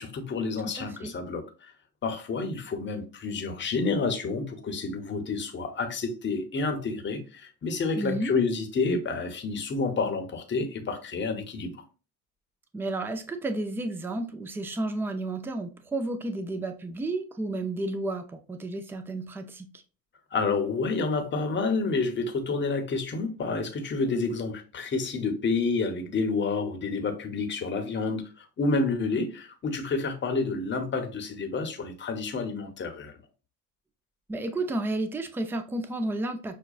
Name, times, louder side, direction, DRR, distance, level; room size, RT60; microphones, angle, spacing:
voice 1, 0.0-1.7 2.0-11.8 20.3-33.2, left 4 dB, 30° left, 0.8 m, -29 dB
voice 2, 0.7-1.1 8.0-8.3 12.7-19.8 34.3-36.6, right 2 dB, 5° right, 0.3 m, -32 dB
6.0 x 2.2 x 2.3 m
cardioid pair, 110°, 38 cm